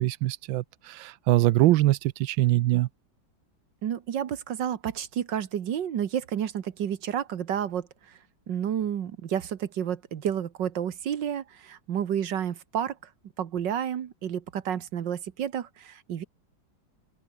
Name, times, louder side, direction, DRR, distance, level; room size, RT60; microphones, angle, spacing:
voice 1, 0.0-2.9, right 16 dB, 85° right, 1.4 m, -23 dB
voice 2, 3.8-8.2 8.5-13.0 13.4-16.2, right 9 dB, 70° right, 1.8 m, -30 dB
open air
omnidirectional pair, 2.1 m